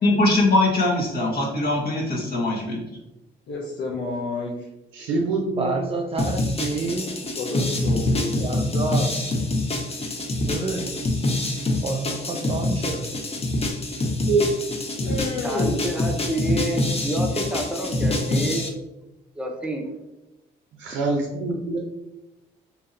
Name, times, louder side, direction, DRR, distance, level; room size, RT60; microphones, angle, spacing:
voice 1, 0.0-2.8, left 2 dB, 50° left, -3 dB, 1.2 m, -21 dB
voice 2, 3.5-4.7 7.3-8.5 15.0-15.8, left 2 dB, 70° left, -2 dB, 0.7 m, -30 dB
voice 3, 4.9-5.9 14.3-14.5 20.8-21.8, right 3 dB, 90° right, 1 dB, 0.5 m, -24 dB
voice 4, 5.6-7.1 8.4-9.1 10.5-10.9 11.8-13.1, right 3 dB, 30° right, 2 dB, 0.4 m, -28 dB
sound 1, 6.2-18.7, left 2 dB, 30° left, 0.6 m, -26 dB
voice 5, 15.4-18.7 19.4-19.9, right 1 dB, 5° right, 2 dB, 0.8 m, -29 dB
2.9 x 2.6 x 3.8 m, 0.98 s
supercardioid pair, 65°, 20 cm